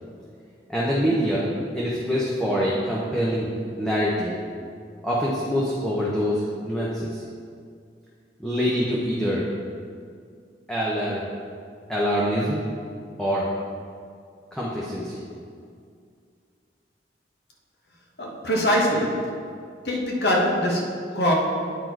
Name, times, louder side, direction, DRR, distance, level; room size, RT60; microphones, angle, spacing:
voice 1, 0.7-1.5 1.7-3.5 3.8-4.3 5.0-7.2 8.4-9.4 10.7-11.3 11.9-12.6 13.2-13.5 14.5-15.2, equal, 5° left, -7 dB, 0.7 m, -25 dB
voice 2, 18.2-19.3 19.8-21.3, equal, 70° left, -1 dB, 1.3 m, -23 dB
9.1 x 4.3 x 4.6 m, 2.2 s
head